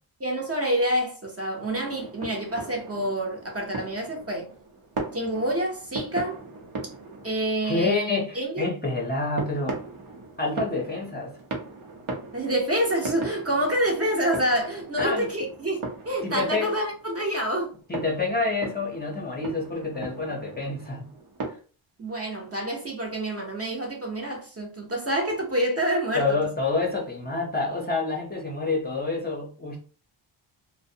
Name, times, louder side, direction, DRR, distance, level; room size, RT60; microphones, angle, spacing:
voice 1, 0.2-4.5 5.1-6.4 7.2-8.7 12.3-17.7 22.0-26.4, right 1 dB, 30° right, 0.6 m, -27 dB
sound 1, 1.7-21.5, right 3 dB, 85° right, 0.8 m, -38 dB
voice 2, 7.6-9.8 10.4-11.3 15.0-15.3 16.2-16.8 17.9-21.1 21.5-21.6 26.1-29.8, left 3 dB, 20° left, 0.5 m, -28 dB
2.5 x 2.1 x 2.6 m
wide cardioid pair, 125°, 49 cm